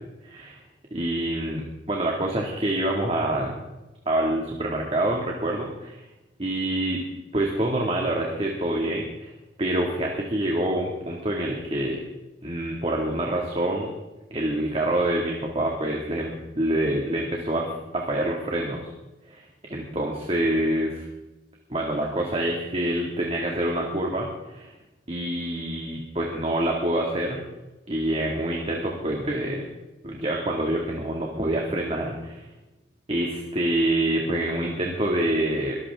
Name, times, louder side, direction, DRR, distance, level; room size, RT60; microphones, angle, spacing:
voice 1, 0.9-3.6 4.1-6.0 6.4-7.0 7.3-9.3 9.6-12.0 12.4-13.9 14.3-18.9 19.3-21.1 21.7-24.3 25.1-27.4 27.9-29.7 30.0-32.5 33.1-35.8, right 1 dB, 35° right, -1 dB, 2.2 m, -26 dB
23.0 x 14.0 x 3.7 m, 1.0 s
head